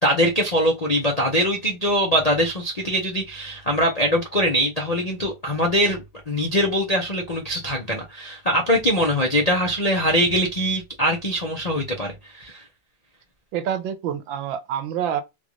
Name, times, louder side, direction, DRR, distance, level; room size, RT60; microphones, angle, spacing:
voice 1, 0.0-12.6, equal, 75° left, 0.3 m, -22 dB
voice 2, 13.5-15.2, right 9 dB, 85° right, 1.4 m, -27 dB
3.8 x 2.5 x 2.9 m
omnidirectional pair, 2.0 m